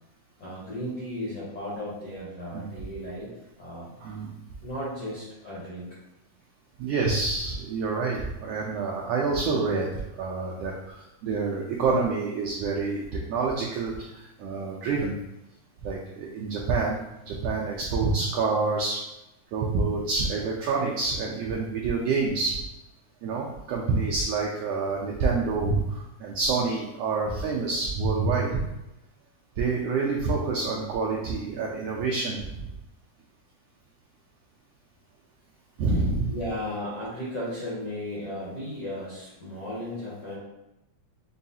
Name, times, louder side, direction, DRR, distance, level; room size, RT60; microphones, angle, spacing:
voice 1, 0.4-3.3 3.6-3.9 4.6-5.9 8.5-8.8 21.5-21.7 36.3-40.4, left 1 dB, 70° left, -8 dB, 1.0 m, -35 dB
voice 2, 6.8-10.7 11.2-13.0 13.3-13.9 14.4-15.1 15.8-17.0 17.3-19.0 19.5-22.5 23.2-28.6 29.6-32.4 35.8-36.3, right 4 dB, 85° right, -2 dB, 1.4 m, -27 dB
6.1 x 2.3 x 2.7 m, 0.93 s
omnidirectional pair, 3.3 m